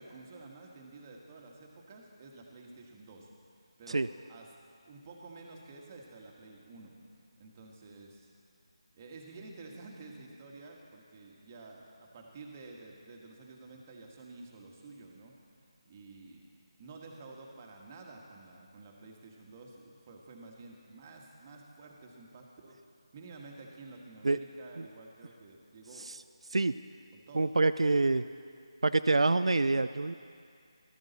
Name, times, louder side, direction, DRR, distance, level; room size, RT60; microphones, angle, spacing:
voice 1, 0.0-4.5 4.8-6.9 7.4-8.3 8.9-15.3 15.8-16.4 16.8-22.8 23.1-26.1 27.1-27.5, right 3 dB, 25° right, 0 dB, 1.4 m, -51 dB
voice 2, 27.3-28.3 28.8-30.1, right 3 dB, 85° right, 11 dB, 0.3 m, -26 dB
14.0 x 13.5 x 4.0 m, 2.3 s
figure-of-eight pair, 165°, 3 cm